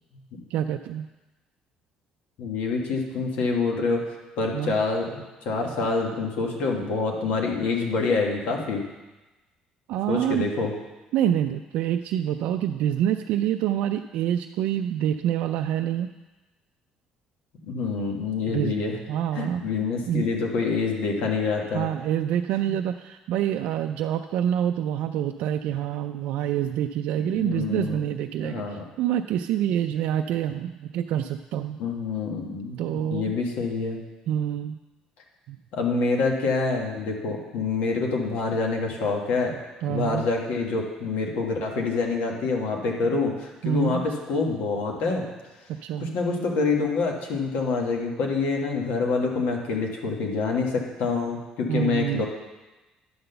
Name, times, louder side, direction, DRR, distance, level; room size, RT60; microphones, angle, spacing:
voice 1, 0.5-1.1 4.5-4.8 9.9-10.5 11.1-16.1 18.5-18.8 19.1-19.6 20.1-20.2 21.7-31.8 32.8-33.4 34.3-34.8 35.5-35.6 39.8-40.2 43.6-44.0 45.7-46.1 51.7-52.2, right 10 dB, 75° right, 6 dB, 0.3 m, -26 dB
voice 2, 2.4-4.0 4.4-8.9 10.1-10.7 17.6-19.0 19.3-21.9 27.2-28.0 28.4-28.8 31.8-34.0 35.7-39.6 39.9-45.3 46.0-52.3, left 4 dB, 80° left, 1 dB, 1.5 m, -26 dB
10.0 x 4.0 x 6.7 m, 1.1 s
cardioid pair, 120°, 2 cm